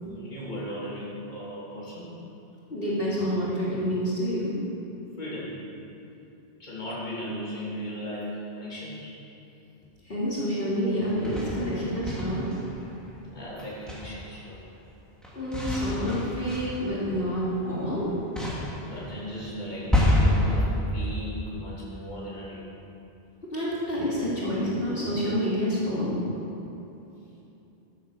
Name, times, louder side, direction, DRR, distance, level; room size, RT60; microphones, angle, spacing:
voice 1, 0.0-2.1 5.2-5.6 6.6-9.1 13.3-14.6 18.8-22.7, equal, 40° left, -8 dB, 3.0 m, -36 dB
voice 2, 2.7-4.5 10.1-12.5 15.3-18.0 23.5-26.1, equal, 60° left, -8 dB, 3.1 m, -28 dB
sound 1, 11.0-13.0 13.6-14.4 15.2-18.0 18.4-20.6, left 1 dB, ahead, 2.7 m, -28 dB
14.0 x 8.5 x 6.7 m, 2.9 s
omnidirectional pair, 1.1 m